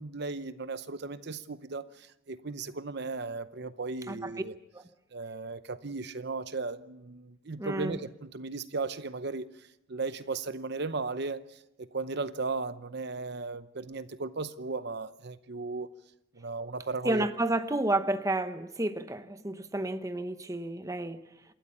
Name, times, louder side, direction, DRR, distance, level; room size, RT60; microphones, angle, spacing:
voice 1, 0.0-4.5 5.1-15.9 16.3-17.3, right 3 dB, 55° right, 0.8 m, -36 dB
voice 2, 7.6-8.0 17.0-21.2, right 1 dB, 15° right, 0.9 m, -31 dB
28.0 x 13.0 x 8.5 m
head